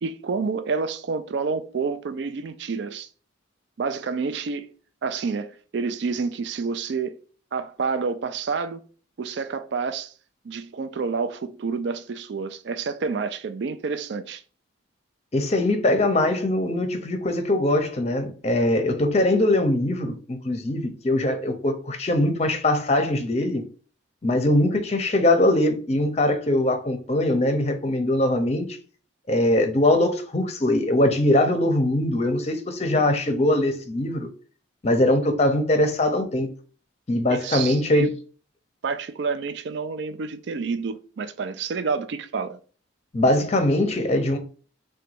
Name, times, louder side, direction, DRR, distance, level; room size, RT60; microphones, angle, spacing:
voice 1, 0.0-3.1 3.8-4.7 5.0-7.1 7.5-8.8 9.2-10.1 10.4-14.4 37.3-38.1 38.8-42.6, right 5 dB, 60° right, 0.4 m, -29 dB
voice 2, 15.3-23.6 24.2-28.7 29.3-34.3 34.8-36.5 37.1-38.1 43.1-44.4, left 1 dB, 35° left, 0.6 m, -22 dB
3.8 x 2.2 x 4.5 m
head